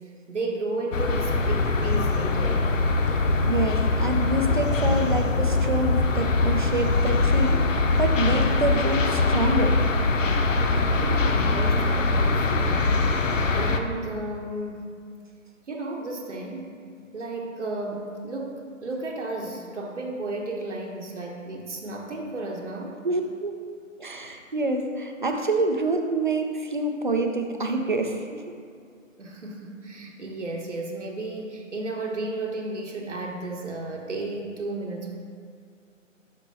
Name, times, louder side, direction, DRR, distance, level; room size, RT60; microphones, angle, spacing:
voice 1, 0.3-2.8 11.0-13.0 13.5-14.9 15.7-16.7 17.1-23.0 29.2-35.1, right 2 dB, 60° right, 0 dB, 1.0 m, -33 dB
sound 1, 0.9-13.8, left 3 dB, 70° left, 0.7 m, -22 dB
voice 2, 3.0-9.8 23.0-23.6 24.0-28.5, right 2 dB, 40° right, 4 dB, 0.5 m, -27 dB
12.0 x 4.5 x 2.7 m, 2.3 s
figure-of-eight pair, 160°, 40 cm